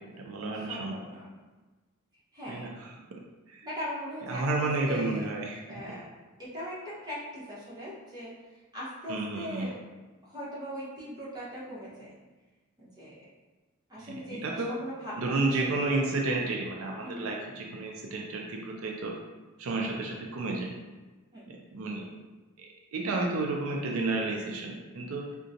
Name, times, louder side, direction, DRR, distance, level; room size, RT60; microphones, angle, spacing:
voice 1, 0.0-1.0 2.5-3.2 3.5-3.7 4.3-6.0 9.1-9.7 14.0-14.7 15.2-19.2 19.6-20.7 21.5-22.1 22.6-25.4, right 2 dB, 80° right, 0 dB, 0.4 m, -32 dB
voice 2, 0.7-1.4 2.3-2.8 3.6-5.3 5.7-6.1 6.4-6.8 7.0-8.3 8.7-9.8 10.2-12.1 12.8-13.1 13.9-15.6 15.9-16.0 17.0-17.3 21.3-21.5, equal, 20° right, -9 dB, 1.0 m, -40 dB
3.7 x 2.2 x 2.7 m, 1.2 s
head